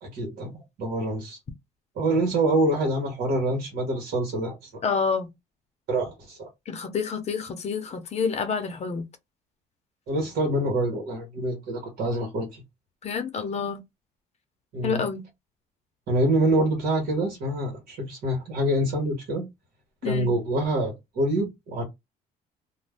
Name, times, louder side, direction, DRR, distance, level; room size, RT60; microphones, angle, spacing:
voice 1, 0.0-1.4 1.9-4.7 5.9-6.5 10.1-12.6 14.7-15.0 16.1-19.4 20.0-21.8, right 1 dB, 65° right, 1.2 m, -26 dB
voice 2, 4.8-5.3 6.7-9.0 13.0-13.8 14.8-15.2 20.0-20.4, left 5 dB, 40° left, 0.7 m, -28 dB
2.6 x 2.2 x 3.4 m
cardioid pair, 110°, 17 cm